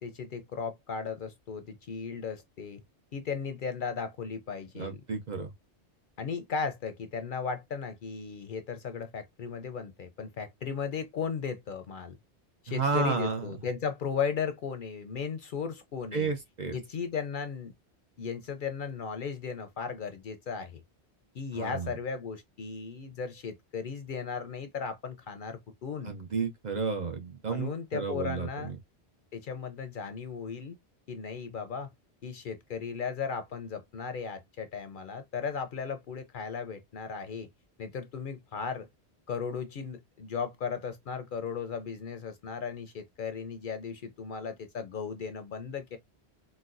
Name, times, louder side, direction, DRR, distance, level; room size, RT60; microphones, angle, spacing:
voice 1, 0.0-2.8 3.1-5.0 6.2-12.2 12.6-16.3 16.7-17.7 18.2-20.8 21.3-26.2 27.5-28.8 29.3-30.8 31.1-31.9 32.2-37.5 37.8-38.9 39.3-46.0, left 6 dB, 60° left, 0.6 m, -36 dB
voice 2, 4.8-5.5 12.7-13.5 16.1-16.8 21.5-21.9 26.0-28.8, right 4 dB, 50° right, 0.6 m, -32 dB
4.0 x 2.2 x 2.4 m
omnidirectional pair, 1.1 m